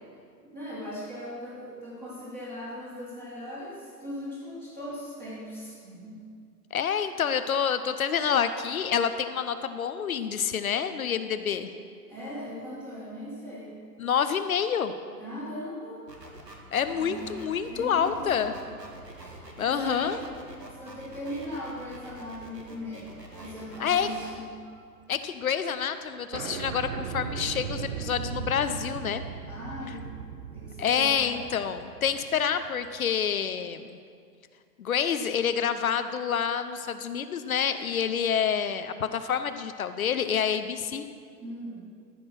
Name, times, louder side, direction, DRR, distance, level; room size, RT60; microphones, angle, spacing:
voice 1, 0.4-6.2 6.9-7.0 12.1-13.7 15.2-16.0 16.9-17.3 17.7-18.5 19.1-20.2 20.7-23.1 23.3-24.5 29.5-30.0 30.5-31.3 41.4-41.8, left 1 dB, 20° right, -9 dB, 2.2 m, -39 dB
voice 2, 6.7-11.7 14.0-14.9 16.7-18.5 19.6-20.2 23.8-24.1 25.1-29.2 30.8-33.8 34.8-41.1, left 7 dB, 60° left, 10 dB, 0.7 m, -28 dB
sound 1, 16.1-24.3, right 1 dB, 85° right, 1.8 m, -46 dB
sound 2, 18.1-20.7 21.2-21.3 22.8-23.1 23.4-24.8 25.1-25.2 25.4-25.5 25.8-25.9 26.3-33.0, right 7 dB, 50° right, 0.7 m, -39 dB
14.0 x 6.2 x 6.0 m, 2.2 s
figure-of-eight pair, 110°, 48 cm